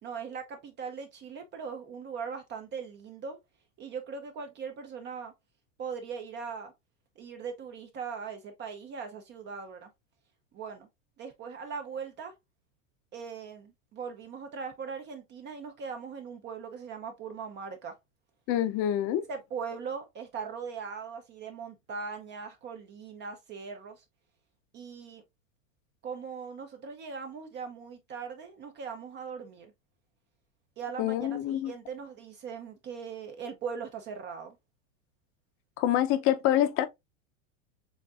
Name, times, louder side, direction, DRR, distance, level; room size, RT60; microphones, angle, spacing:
voice 1, 0.0-3.4 3.8-5.3 5.8-6.7 7.2-9.9 10.5-10.9 11.2-12.3 13.1-17.9 19.3-24.0 24.7-25.2 26.0-29.7 30.8-34.6, right 6 dB, 30° right, 0.7 m, -40 dB
voice 2, 18.5-19.3 31.0-31.7 35.8-36.9, left 12 dB, 35° left, 0.7 m, -26 dB
7.0 x 2.6 x 2.4 m
supercardioid pair, 140°, 39 cm